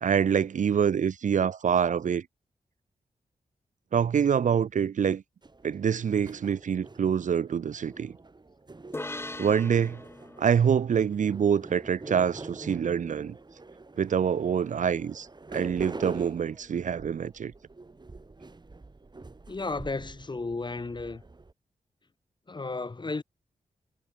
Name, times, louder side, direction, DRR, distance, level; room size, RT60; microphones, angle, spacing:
voice 1, 0.0-2.2 3.9-5.2 5.6-8.1 9.4-10.0 10.4-13.4 14.0-17.5, right 7 dB, 60° right, 0.6 m, -26 dB
sound 1, 5.4-21.5, right 3 dB, 30° right, 8.0 m, -45 dB
sound 2, 8.9-12.4, left 2 dB, 15° left, 5.5 m, -42 dB
voice 2, 19.5-21.2 22.5-23.2, left 3 dB, 35° left, 2.8 m, -33 dB
wide cardioid pair, 90°, 14 cm